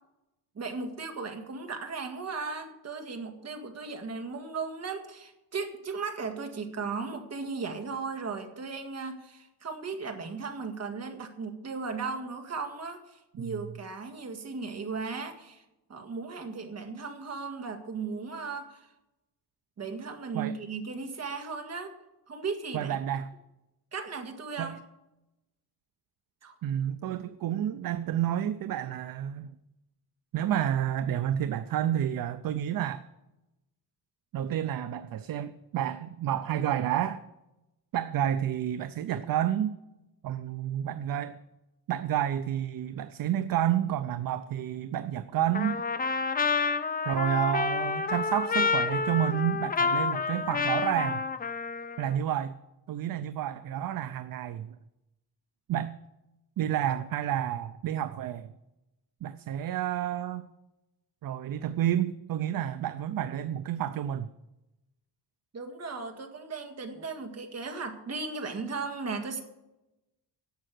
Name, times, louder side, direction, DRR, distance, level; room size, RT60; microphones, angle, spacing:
voice 1, 0.6-15.6 15.9-18.9 19.8-21.9 22.3-23.0 23.9-24.8 26.4-26.5 65.5-69.4, right 4 dB, 40° right, 5 dB, 1.8 m, -36 dB
voice 2, 22.7-23.3 24.6-24.8 26.6-29.5 30.3-33.0 34.3-37.2 37.9-39.8 40.2-41.4 41.9-45.8 47.0-51.2 52.0-52.6 52.9-54.8 55.7-56.0 56.6-58.5 59.2-60.5 61.2-64.3, right 10 dB, 55° right, 12 dB, 0.6 m, -30 dB
Trumpet, 45.5-52.2, left 5 dB, 20° left, 0.5 m, -29 dB
11.5 x 7.6 x 7.7 m, 0.95 s
cardioid pair, 140°, 41 cm